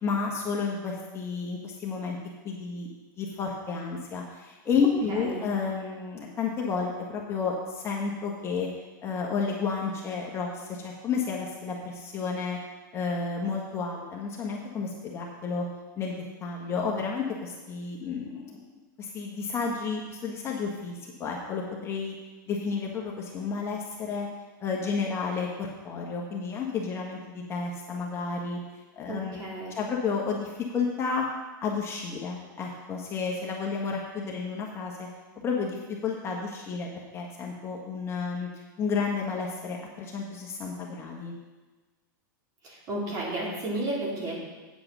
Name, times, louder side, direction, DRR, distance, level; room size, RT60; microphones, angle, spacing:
voice 1, 0.0-2.2 2.4-2.9 3.2-8.7 9.0-12.6 12.9-15.6 16.0-18.6 19.0-22.1 22.5-24.3 24.6-28.6 29.0-31.3 31.6-35.1 35.4-38.5 38.8-41.3, left 5 dB, 25° left, -1 dB, 1.4 m, -31 dB
voice 2, 5.1-5.4 29.1-29.7 42.6-44.3, right 1 dB, 35° right, -4 dB, 3.8 m, -32 dB
8.7 x 7.8 x 6.2 m, 1.3 s
supercardioid pair, 140°, 11 cm